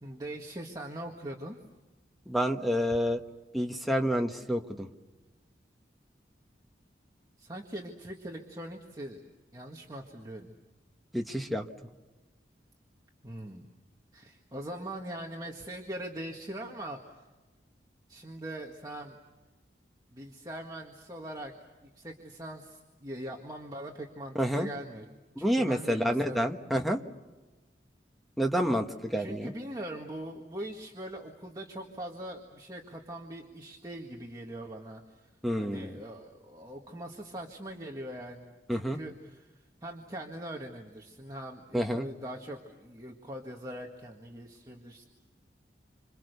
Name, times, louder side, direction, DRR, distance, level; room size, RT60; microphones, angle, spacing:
voice 1, 0.0-1.6 7.4-9.2 9.5-10.5 13.2-13.7 14.1-17.3 18.1-19.2 20.1-21.5 21.8-25.1 25.4-26.5 29.2-35.3 35.6-45.1, right 1 dB, 20° right, 0 dB, 1.8 m, -42 dB
voice 2, 2.3-3.2 3.5-4.9 11.1-11.7 24.3-24.7 25.4-27.0 28.4-29.5 35.4-35.9 38.7-39.0 41.7-42.1, equal, ahead, 4 dB, 1.3 m, -28 dB
27.5 x 27.0 x 6.8 m, 1.2 s
head